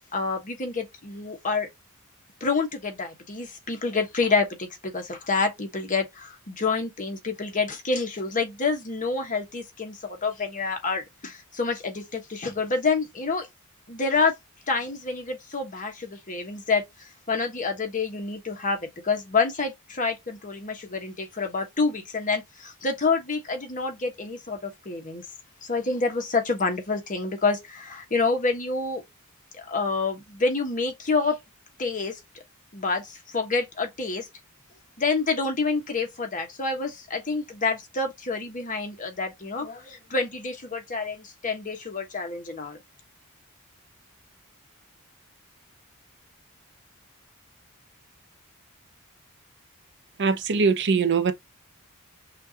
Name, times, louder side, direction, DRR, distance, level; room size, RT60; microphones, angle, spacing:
voice 1, 0.1-1.7 2.4-13.5 13.9-14.3 14.7-25.2 25.6-29.0 29.5-31.4 31.8-32.2 32.7-34.3 35.0-42.8, left 4 dB, 35° left, 1.2 m, -28 dB
voice 2, 50.2-51.3, right 5 dB, 55° right, 0.6 m, -22 dB
5.7 x 2.5 x 2.8 m
head